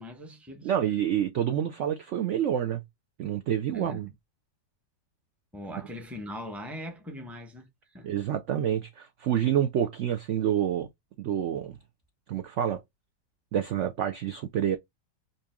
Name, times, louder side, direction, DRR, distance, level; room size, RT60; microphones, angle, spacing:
voice 1, 0.0-0.7 3.7-4.0 5.5-8.1, left 1 dB, ahead, 0.7 m, -41 dB
voice 2, 0.6-2.8 3.2-4.1 8.0-10.9 11.2-11.8 12.3-12.8 13.5-14.8, right 10 dB, 75° right, 0.6 m, -28 dB
5.3 x 2.7 x 2.2 m
omnidirectional pair, 1.9 m